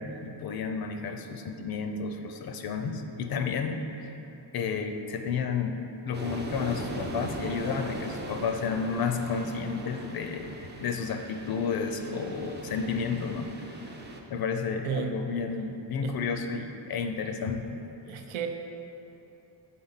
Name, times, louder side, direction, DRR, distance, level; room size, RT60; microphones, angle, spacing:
voice 1, 0.0-4.2 4.5-5.8 6.0-13.9 14.3-17.8, left 5 dB, 50° left, 5 dB, 0.5 m, -32 dB
sound 1, 6.1-14.2, right 2 dB, 25° right, 0.3 m, -39 dB
voice 2, 14.8-15.2 16.0-16.2 18.0-18.5, right 8 dB, 90° right, 4 dB, 0.7 m, -33 dB
7.7 x 3.7 x 4.0 m, 2.9 s
wide cardioid pair, 160°, 47 cm